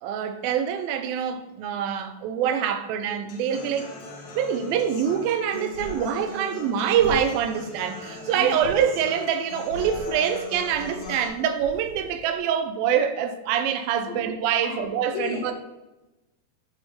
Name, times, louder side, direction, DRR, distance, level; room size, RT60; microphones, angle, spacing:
voice 1, 0.0-3.9 4.4-15.5, right 8 dB, 85° right, 2.4 m, -25 dB
Human voice / Acoustic guitar, 3.3-11.3, left 3 dB, 65° left, 1.6 m, -39 dB
sound 1, 5.0-12.6, left 1 dB, 40° right, 1.2 m, -43 dB
voice 2, 15.1-15.5, left 7 dB, 85° left, 2.8 m, -34 dB
8.2 x 4.4 x 3.6 m
omnidirectional pair, 4.1 m